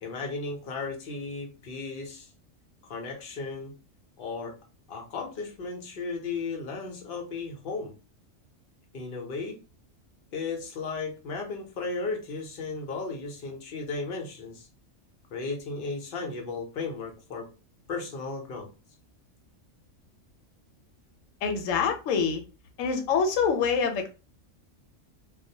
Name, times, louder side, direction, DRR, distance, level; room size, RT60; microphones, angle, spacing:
voice 1, 0.0-2.3 2.8-3.7 4.2-4.5 4.9-7.9 8.9-9.6 10.3-14.7 15.3-17.5 17.9-18.7, left 4 dB, 55° left, 2 dB, 0.8 m, -35 dB
voice 2, 21.4-22.4 22.8-24.1, left 6 dB, 90° left, 5 dB, 1.0 m, -25 dB
2.3 x 2.0 x 2.6 m, 0.32 s
omnidirectional pair, 1.3 m